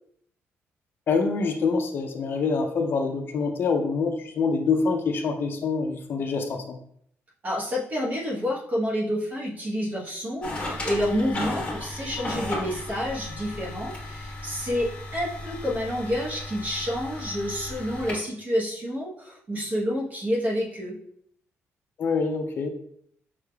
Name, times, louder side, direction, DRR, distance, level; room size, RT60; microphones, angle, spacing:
voice 1, 1.1-6.8 22.0-22.7, left 4 dB, 45° left, 5 dB, 0.4 m, -25 dB
voice 2, 7.4-21.0, equal, 35° right, -3 dB, 1.0 m, -29 dB
sound 1, 10.4-18.1, left 2 dB, 25° left, 1.2 m, -35 dB
5.5 x 3.3 x 2.2 m, 0.65 s
cardioid pair, 160°, 5 cm